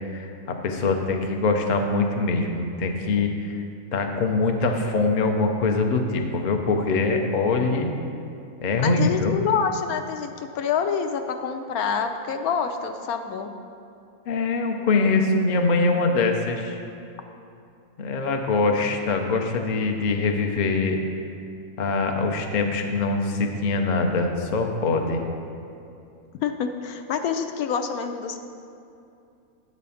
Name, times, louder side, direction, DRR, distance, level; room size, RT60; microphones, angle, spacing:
voice 1, 0.1-3.6 3.9-7.9 8.6-9.4 14.3-16.8 18.0-21.0 21.8-25.2, left 3 dB, 50° left, 4 dB, 0.5 m, -23 dB
voice 2, 8.8-13.5 26.4-28.4, left 6 dB, 80° left, 7 dB, 1.1 m, -27 dB
8.7 x 4.1 x 7.0 m, 2.6 s
omnidirectional pair, 1.6 m